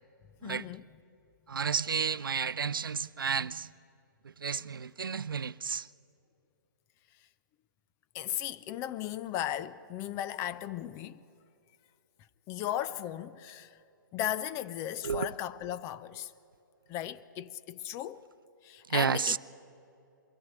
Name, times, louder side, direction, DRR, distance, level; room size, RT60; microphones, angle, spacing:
voice 1, 0.4-0.9 8.1-11.2 12.5-13.8 14.1-16.3 16.9-18.2 18.6-19.4, left 12 dB, 25° left, 0.5 m, -36 dB
voice 2, 1.5-3.7 4.2-5.9 15.0-15.4 18.9-19.4, right 6 dB, 85° right, 0.5 m, -31 dB
22.5 x 15.5 x 8.1 m
hypercardioid pair, 130°, 11 cm